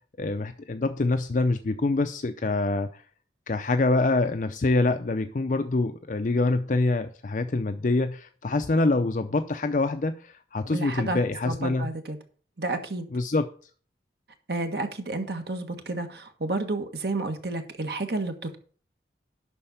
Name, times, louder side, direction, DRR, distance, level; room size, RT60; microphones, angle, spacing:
voice 1, 0.2-3.0 3.5-11.9 13.1-13.5, left 2 dB, 45° left, 8 dB, 0.5 m, -25 dB
voice 2, 10.7-11.2 11.4-12.2 12.6-13.1 14.5-18.6, right 2 dB, 65° right, 6 dB, 1.5 m, -31 dB
11.5 x 4.3 x 6.8 m, 0.43 s
head